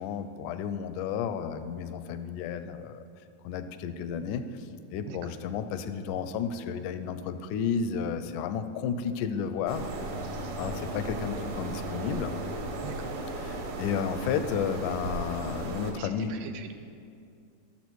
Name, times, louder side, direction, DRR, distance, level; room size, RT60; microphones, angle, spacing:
voice 1, 0.0-3.0 3.4-4.5 4.9-9.9 10.6-12.3 13.4-16.4, left 7 dB, 80° left, 10 dB, 2.0 m, -32 dB
sound 1, 9.7-15.9, right 2 dB, 60° right, 2.0 m, -35 dB
voice 2, 12.8-13.1 16.0-16.7, right 8 dB, 75° right, 6 dB, 2.1 m, -43 dB
14.0 x 7.1 x 4.6 m, 2.4 s
omnidirectional pair, 3.8 m